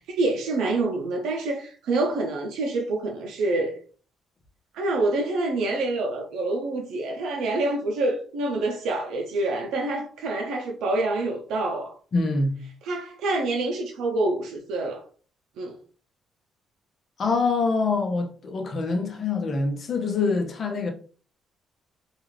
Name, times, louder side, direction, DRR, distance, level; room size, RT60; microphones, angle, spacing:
voice 1, 0.0-3.8 4.7-11.9 12.8-15.0 15.6-15.7, right 2 dB, 80° right, 0.5 m, -27 dB
voice 2, 12.1-12.6 17.2-20.9, left 3 dB, 55° left, 0.7 m, -25 dB
2.4 x 2.3 x 3.2 m
supercardioid pair, 70°, 0 cm